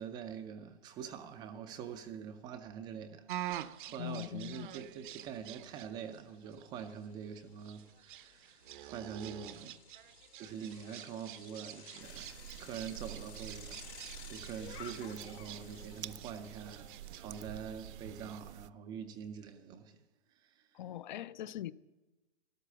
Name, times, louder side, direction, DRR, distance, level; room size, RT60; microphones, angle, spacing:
voice 1, 0.0-9.8 10.4-12.3 12.6-13.9 14.3-20.0 20.4-20.7, right 7 dB, 15° right, 0.4 m, -45 dB
sound 1, 3.3-18.4, right 13 dB, 50° right, 0.7 m, -48 dB
Bicycle, 3.5-3.6 4.0-17.8, left 7 dB, 85° left, 4.2 m, -56 dB
voice 2, 4.0-4.7 20.7-21.7, left 12 dB, 45° left, 0.5 m, -41 dB
sound 2, 12.0-18.7, right 10 dB, 85° right, 0.6 m, -49 dB
13.5 x 12.0 x 7.0 m
hypercardioid pair, 140°, 33 cm